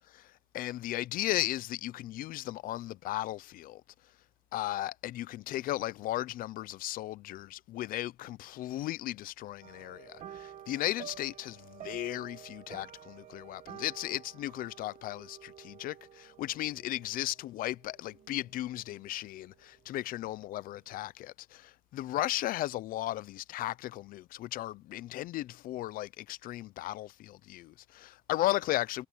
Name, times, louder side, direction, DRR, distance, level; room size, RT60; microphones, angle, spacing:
voice 1, 0.1-3.8 4.5-29.1, left 15 dB, 70° left, 0.6 m, -36 dB
sound 1, 9.6-19.2 19.5-19.8 20.2-20.3, right 10 dB, 50° right, 2.0 m, -51 dB
cardioid pair, 145°, 15 cm